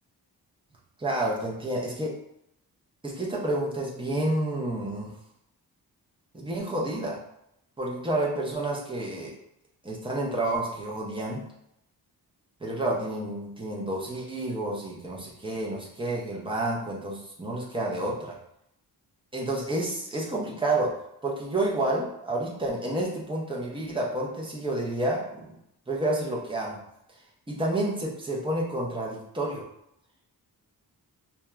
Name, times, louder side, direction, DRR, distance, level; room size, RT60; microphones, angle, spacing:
voice 1, 1.0-2.1 3.0-5.2 6.3-7.2 7.8-9.4 9.8-11.5 12.6-18.4 19.3-25.5 25.9-26.8 27.5-29.7, right 1 dB, 15° right, -3 dB, 0.5 m, -30 dB
2.7 x 2.1 x 2.3 m, 0.77 s
wide cardioid pair, 150°, 40 cm